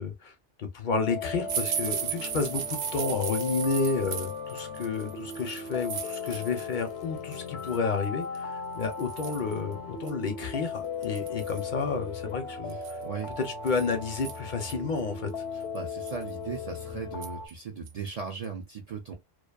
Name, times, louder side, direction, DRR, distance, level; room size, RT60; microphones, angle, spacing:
voice 1, 0.0-13.0 13.4-15.4, left 4 dB, 60° left, 0.6 m, -31 dB
sound 1, 0.9-17.5, left 5 dB, 85° left, 0.8 m, -37 dB
sound 2, 1.5-6.8 7.2-7.8 8.3-8.4 8.8-9.5 10.1-10.2 10.4-10.5 11.0-11.7 12.7-14.7 15.3-15.4 15.8-16.3 17.2-17.5 17.9-18.1 18.4-18.5, right 8 dB, 85° right, 0.8 m, -36 dB
voice 2, 12.7-13.3 15.5-19.1, right 5 dB, 55° right, 0.4 m, -38 dB
2.4 x 2.2 x 2.3 m
omnidirectional pair, 1.1 m